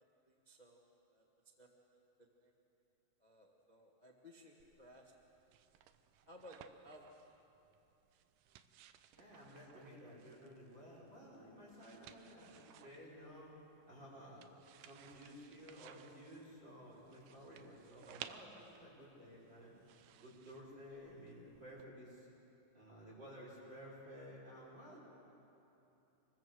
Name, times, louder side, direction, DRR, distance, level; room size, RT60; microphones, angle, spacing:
voice 1, 0.3-0.8 1.1-1.2 1.6-2.0 2.4-2.5 3.2-5.1 6.3-7.1, equal, 25° left, 0 dB, 0.9 m, -59 dB
sound 1, 4.6-21.8, right 10 dB, 80° right, 2.3 m, -60 dB
voice 2, 9.2-13.5 13.9-14.5 14.8-19.7 20.2-22.3 22.7-25.0, equal, 30° right, -7 dB, 5.9 m, -54 dB
26.0 x 20.0 x 7.9 m, 2.9 s
omnidirectional pair, 3.8 m